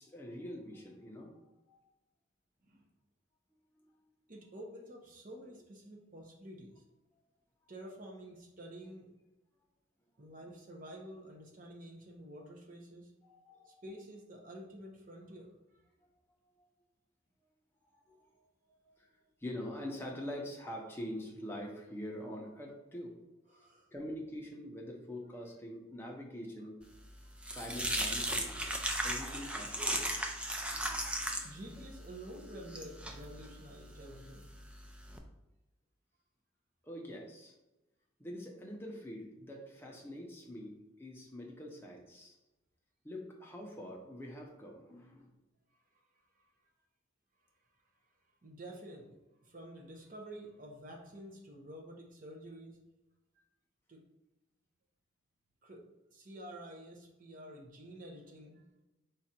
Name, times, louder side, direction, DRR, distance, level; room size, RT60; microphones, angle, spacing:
voice 1, 0.0-1.3 1.7-1.8 3.8-3.9 13.2-13.8 16.1-16.2 16.6-16.7 17.9-18.5 18.8-23.2 23.5-26.8 27.5-28.6 29.0-30.3 36.8-37.5 38.2-42.4 43.0-45.4, left 1 dB, 10° left, -1 dB, 0.7 m, -45 dB
voice 2, 4.3-6.8 7.7-9.1 10.2-13.1 13.6-15.8 23.5-23.9 31.4-34.8 48.4-52.8 53.4-53.5 53.9-54.0 55.6-58.7, right 1 dB, 40° right, 0 dB, 0.8 m, -50 dB
sound 1, 26.9-35.2, right 1 dB, 5° right, 0.3 m, -37 dB
5.0 x 2.4 x 4.3 m, 1.0 s
head